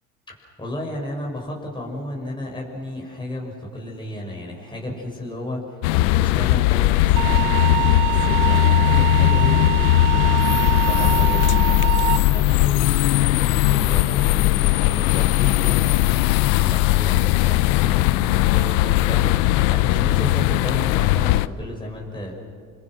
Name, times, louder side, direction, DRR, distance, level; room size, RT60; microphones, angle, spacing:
voice 1, 0.3-22.3, left 1 dB, 10° left, -1 dB, 6.0 m, -33 dB
sound 1, 5.8-21.5, left 16 dB, 85° left, 0.7 m, -18 dB
sound 2, 7.2-12.2, right 17 dB, 80° right, 0.9 m, -25 dB
29.5 x 23.0 x 6.3 m, 2.3 s
supercardioid pair, 85°, 37 cm